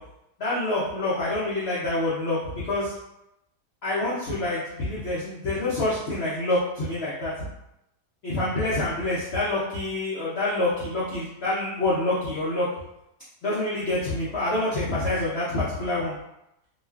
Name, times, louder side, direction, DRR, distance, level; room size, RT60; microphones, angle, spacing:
voice 1, 0.4-2.9 3.8-7.3 8.2-12.7 13.4-16.1, left 2 dB, 70° left, -9 dB, 0.6 m, -27 dB
2.9 x 2.3 x 2.3 m, 0.85 s
omnidirectional pair, 1.8 m